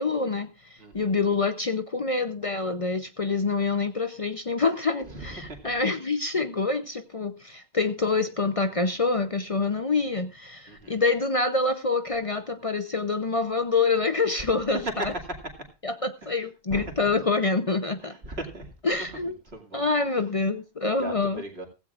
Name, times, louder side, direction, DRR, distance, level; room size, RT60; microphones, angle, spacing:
voice 1, 0.0-15.1 15.8-18.1 18.8-19.3 19.7-21.4, left 3 dB, 35° left, 0.7 m, -26 dB
voice 2, 0.8-1.2 5.1-5.7 10.7-11.0 14.4-14.5 15.0-15.4 16.2-16.3 16.7-17.0 18.0-18.7 19.5-19.9 20.9-21.7, right 1 dB, 70° right, 2.6 m, -37 dB
16.0 x 16.0 x 2.4 m
omnidirectional pair, 1.1 m